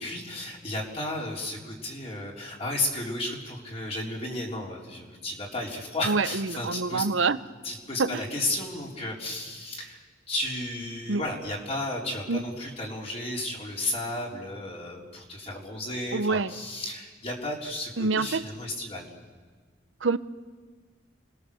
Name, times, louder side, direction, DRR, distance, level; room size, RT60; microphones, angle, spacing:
voice 1, 0.0-7.0 7.6-19.1, left 1 dB, 30° left, -2 dB, 3.9 m, -33 dB
voice 2, 6.0-7.4 8.0-8.2 11.1-11.3 12.3-12.4 16.1-16.5 18.0-18.4 20.0-20.2, right 4 dB, 85° right, 13 dB, 0.8 m, -26 dB
29.0 x 21.0 x 7.0 m, 1.5 s
head